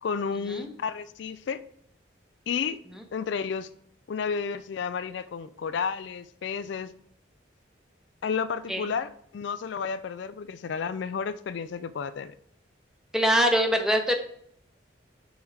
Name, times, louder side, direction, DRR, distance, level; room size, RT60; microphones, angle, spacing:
voice 1, 0.0-1.6 2.5-2.8 3.1-3.7 4.1-6.9 8.2-12.3, left 6 dB, 70° left, 0.3 m, -31 dB
voice 2, 13.1-14.1, equal, 5° right, 0.7 m, -23 dB
5.4 x 4.5 x 4.8 m
head